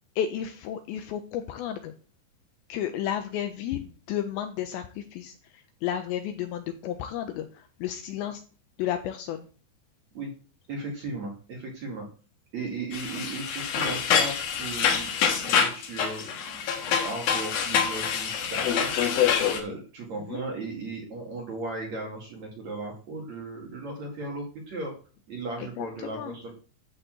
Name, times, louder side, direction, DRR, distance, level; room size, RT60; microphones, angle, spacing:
voice 1, 0.2-1.9 2.7-8.4 8.8-9.5 20.2-20.4 25.6-26.4, left 10 dB, 80° left, 7 dB, 2.7 m, -32 dB
voice 2, 10.7-12.1 12.5-19.2 19.5-24.9 25.3-26.5, right 2 dB, 45° right, 0 dB, 2.6 m, -36 dB
sound 1, 12.9-19.6, left 7 dB, 60° left, 2.9 m, -26 dB
11.5 x 4.2 x 7.8 m, 0.38 s
omnidirectional pair, 5.7 m